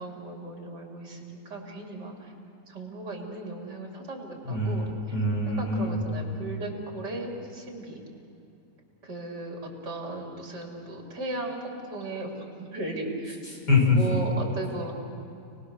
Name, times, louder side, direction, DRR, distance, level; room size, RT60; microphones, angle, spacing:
voice 1, 0.0-2.3 2.7-4.9 5.6-8.0 9.0-13.4 14.0-14.9, right 2 dB, 80° right, 0 dB, 4.1 m, -36 dB
voice 2, 4.4-6.0 13.7-14.0, left 3 dB, 75° left, -3 dB, 7.0 m, -24 dB
29.5 x 20.0 x 6.6 m, 2.8 s
omnidirectional pair, 1.8 m